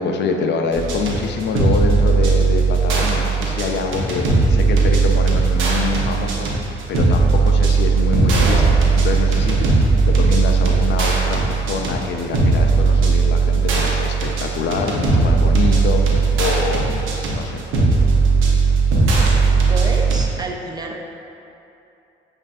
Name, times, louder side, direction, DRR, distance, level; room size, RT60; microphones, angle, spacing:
voice 1, 0.0-17.6, left 4 dB, 60° left, 3 dB, 0.4 m, -25 dB
sound 1, 0.7-20.2, right 4 dB, 85° right, 0.8 m, -17 dB
voice 2, 19.7-21.0, right 2 dB, 20° right, 1 dB, 0.4 m, -29 dB
7.5 x 2.5 x 2.5 m, 2.8 s
cardioid pair, 90°, 20 cm